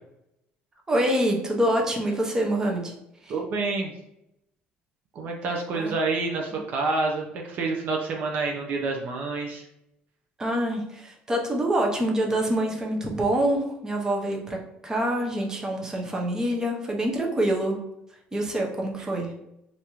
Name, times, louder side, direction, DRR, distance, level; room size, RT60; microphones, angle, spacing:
voice 1, 0.9-2.9 3.2-3.3 5.7-5.9 6.5-6.6 10.4-17.8 18.3-19.3, right 1 dB, 15° right, 0 dB, 0.7 m, -26 dB
voice 2, 3.3-3.9 5.1-9.6, right 3 dB, 55° right, 1 dB, 0.5 m, -28 dB
3.4 x 2.6 x 2.9 m, 0.83 s
cardioid pair, 125°, 4 cm